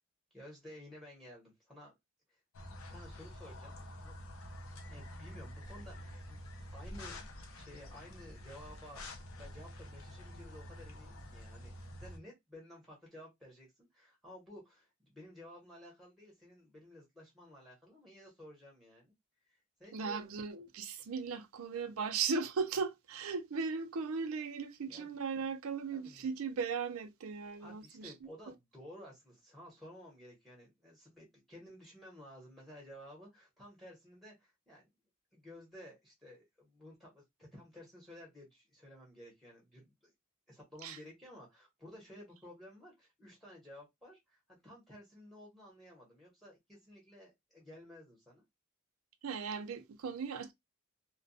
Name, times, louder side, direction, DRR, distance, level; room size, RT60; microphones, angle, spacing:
voice 1, 0.3-1.9 2.3-2.4 2.7-4.3 4.9-6.4 6.7-7.2 7.5-9.0 9.3-11.7 12.0-19.1 19.4-20.3 24.9-25.2 25.9-26.3 27.6-34.8 35.3-40.1 40.5-48.4, left 1 dB, ahead, 0.9 m, -54 dB
sound 1, 2.5-12.2, left 1 dB, 90° left, 0.5 m, -48 dB
voice 2, 19.9-28.1 28.5-28.6 40.8-41.0 49.2-50.5, right 5 dB, 90° right, 0.5 m, -37 dB
2.2 x 2.1 x 2.6 m
head